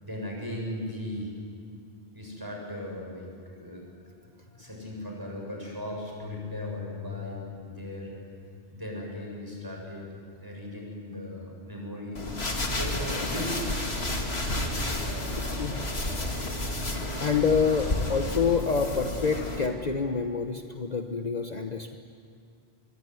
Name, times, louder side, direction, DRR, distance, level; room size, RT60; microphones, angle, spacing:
voice 1, 0.0-1.3 2.1-8.1 8.7-10.0 10.4-12.3 12.7-13.6, left 1 dB, 20° right, -1 dB, 7.4 m, -38 dB
sound 1, 5.7-13.9, left 10 dB, 90° right, 2.0 m, -46 dB
sound 2, 12.2-19.7, left 1 dB, 75° left, 2.7 m, -31 dB
voice 2, 15.4-15.9 17.2-22.0, left 5 dB, 40° left, 5 dB, 1.1 m, -27 dB
25.0 x 23.0 x 9.5 m, 2.3 s
omnidirectional pair, 1.1 m